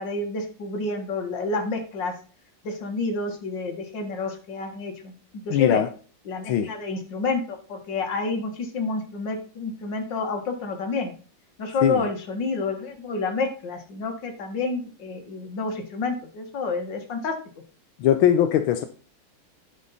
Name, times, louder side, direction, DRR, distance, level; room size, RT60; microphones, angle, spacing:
voice 1, 0.0-2.1 2.6-5.1 5.5-5.8 6.3-11.1 11.6-17.4, left 3 dB, 65° left, 4 dB, 2.3 m, -29 dB
voice 2, 5.5-5.9 6.5-6.7 11.8-12.1 18.0-18.8, left 10 dB, 90° left, 7 dB, 1.5 m, -20 dB
10.5 x 5.5 x 4.2 m, 0.38 s
omnidirectional pair, 2.2 m